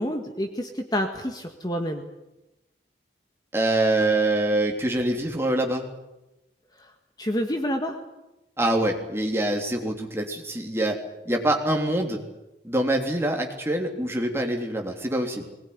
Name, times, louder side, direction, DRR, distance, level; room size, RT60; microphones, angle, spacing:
voice 1, 0.0-2.0 6.8-6.9 7.2-8.0, equal, 20° left, 4 dB, 1.7 m, -28 dB
voice 2, 3.5-5.8 8.6-11.0 11.2-12.2 12.6-15.4, right 1 dB, 15° right, 1 dB, 3.3 m, -25 dB
21.5 x 20.0 x 9.6 m, 0.97 s
head